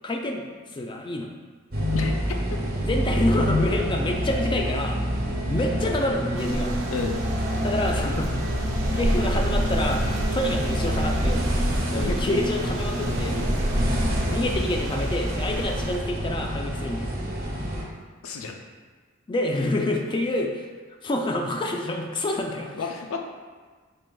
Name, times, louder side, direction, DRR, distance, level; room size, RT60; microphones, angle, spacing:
voice 1, 0.0-0.4 0.7-1.3 2.8-5.2 5.5-6.7 7.6-8.4 8.9-11.4 11.9-13.4 14.3-17.1 19.3-20.7 21.0-22.7, left 1 dB, 25° left, 2 dB, 0.3 m, -27 dB
sound 1, 1.7-17.8, equal, 50° right, 1.0 m, -27 dB
voice 2, 1.9-2.6 6.9-7.2 11.9-12.1 18.2-18.6 22.7-23.2, left 4 dB, 90° left, 3 dB, 0.4 m, -31 dB
sound 2, 6.4-16.0, right 1 dB, 70° right, 0.5 m, -31 dB
4.5 x 3.1 x 2.3 m, 1.4 s
head